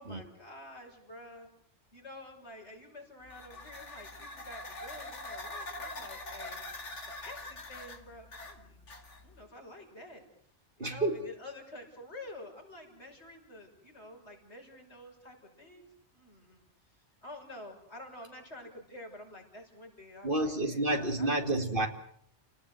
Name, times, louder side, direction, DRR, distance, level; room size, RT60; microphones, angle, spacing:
voice 1, 0.0-1.5 1.9-6.6 7.2-8.8 9.2-10.2 10.8-16.7 17.2-21.5, left 1 dB, 70° left, 6.6 m, -49 dB
sound 1, 3.3-9.4, left 2 dB, 90° left, 2.7 m, -44 dB
voice 2, 10.8-11.2 20.2-21.9, right 2 dB, 50° right, 2.6 m, -30 dB
30.0 x 18.5 x 7.9 m
omnidirectional pair, 1.2 m